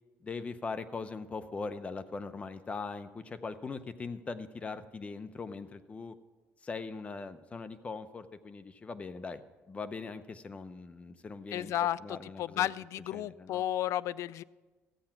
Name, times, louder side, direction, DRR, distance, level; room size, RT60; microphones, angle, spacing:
voice 1, 0.2-6.2 6.6-9.4 9.7-12.7 13.1-13.6, left 4 dB, 25° left, 11 dB, 0.7 m, -41 dB
voice 2, 11.5-14.4, left 12 dB, 70° left, 19 dB, 0.3 m, -33 dB
14.0 x 8.7 x 5.8 m, 1.2 s
cardioid pair, 130°, 5 cm